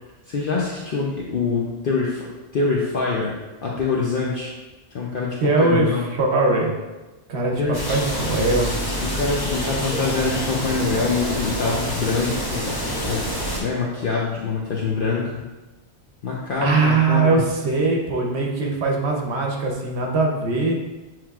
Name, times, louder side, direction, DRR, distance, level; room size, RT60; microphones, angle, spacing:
voice 1, 0.3-4.5 4.9-6.1 7.6-7.8 9.0-13.3 13.5-15.4 16.2-17.4, left 4 dB, 60° left, -3 dB, 0.7 m, -25 dB
voice 2, 5.4-5.9 6.1-6.7 7.3-7.6 7.9-8.7 16.6-20.8, right 3 dB, 70° right, 0 dB, 1.1 m, -21 dB
sound 1, 7.7-13.6, equal, 20° left, 0.9 m, -27 dB
7.3 x 3.1 x 2.4 m, 1.1 s
omnidirectional pair, 1.1 m